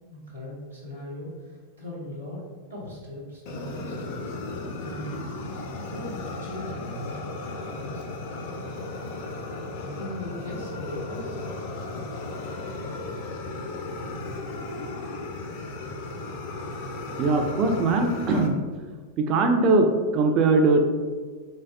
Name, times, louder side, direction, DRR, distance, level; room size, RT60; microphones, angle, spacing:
voice 1, 0.1-2.4 2.7-4.3 4.8-5.2 5.9-7.2 7.6-8.2 9.7-11.4, left 1 dB, 80° right, -7 dB, 1.0 m, -39 dB
Fire, 3.5-18.5, left 2 dB, 45° left, 0.4 m, -35 dB
voice 2, 17.2-18.6 19.2-20.8, right 3 dB, 35° right, 4 dB, 0.4 m, -21 dB
4.0 x 2.2 x 3.4 m, 1.5 s
figure-of-eight pair, 90°, 0 cm